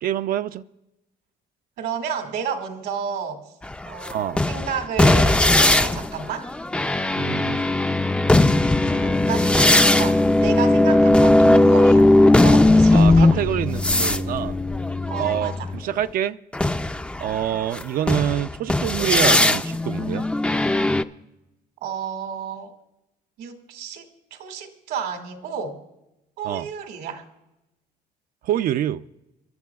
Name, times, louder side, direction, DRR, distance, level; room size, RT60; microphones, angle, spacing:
voice 1, 0.0-0.6 4.1-4.4 7.2-7.6 12.9-14.6 15.2-16.4 17.2-20.3 26.4-26.7 28.4-29.0, right 11 dB, 60° right, 11 dB, 0.4 m, -26 dB
voice 2, 1.8-3.4 3.9-6.5 8.9-12.1 12.4-13.4 15.1-15.7 21.8-22.7 23.4-25.8 26.4-27.2, right 6 dB, 85° right, 5 dB, 1.9 m, -31 dB
sound 1, 3.6-15.8 16.5-21.0, left 2 dB, 5° left, 0.4 m, -18 dB
28.0 x 12.0 x 2.3 m, 0.93 s
cardioid pair, 110°, 17 cm